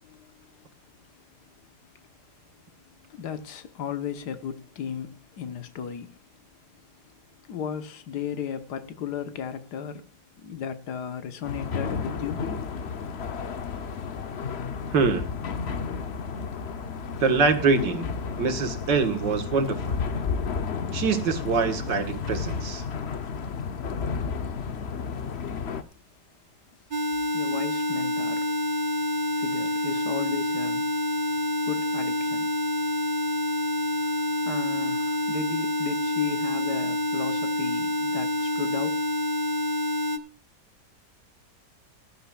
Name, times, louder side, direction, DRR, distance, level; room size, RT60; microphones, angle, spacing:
voice 1, 0.0-0.7 1.0-1.5 1.9-2.0 2.5-6.2 6.7-7.1 7.4-10.1 10.4-12.5 26.9-27.0 27.3-28.6 29.4-31.4 31.6-32.6 33.9-39.1, left 8 dB, 65° left, 1.7 m, -35 dB
sound 1, 11.4-25.8, left 5 dB, 45° left, 0.9 m, -32 dB
voice 2, 14.9-15.3 17.2-18.1 18.4-20.0 20.9-22.8, right 4 dB, 75° right, 2.2 m, -24 dB
sound 2, 26.9-40.2, left 1 dB, 40° right, 0.8 m, -27 dB
18.5 x 11.5 x 2.4 m
omnidirectional pair, 2.0 m